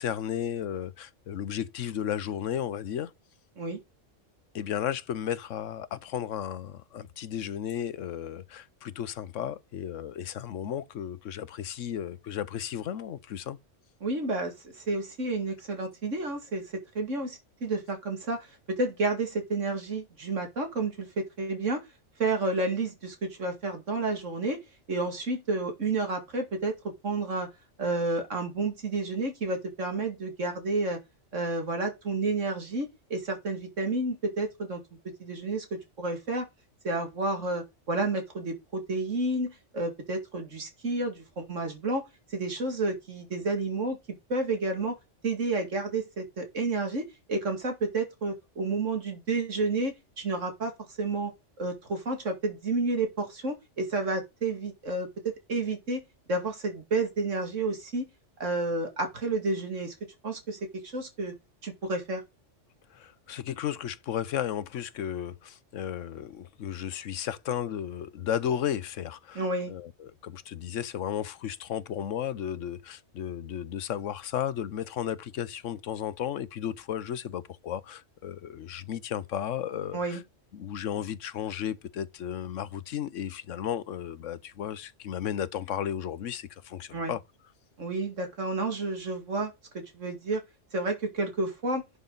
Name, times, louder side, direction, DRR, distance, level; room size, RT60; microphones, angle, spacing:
voice 1, 0.0-3.1 4.5-13.6 62.9-69.4 69.7-80.2 80.5-87.2, left 9 dB, 85° left, 1.1 m, -34 dB
voice 2, 14.0-16.6 16.9-21.8 22.2-24.6 24.9-26.7 27.0-27.5 27.8-31.0 31.3-34.8 35.2-36.5 36.8-42.0 42.3-44.0 44.3-45.0 45.2-50.7 51.0-51.3 51.6-56.0 56.3-58.1 58.4-59.9 60.2-61.3 61.6-62.2 69.3-69.7 79.9-80.2 86.9-87.1 87.8-90.4 90.7-91.8, right 3 dB, 80° right, 2.7 m, -30 dB
11.5 x 6.9 x 4.0 m
omnidirectional pair, 1.3 m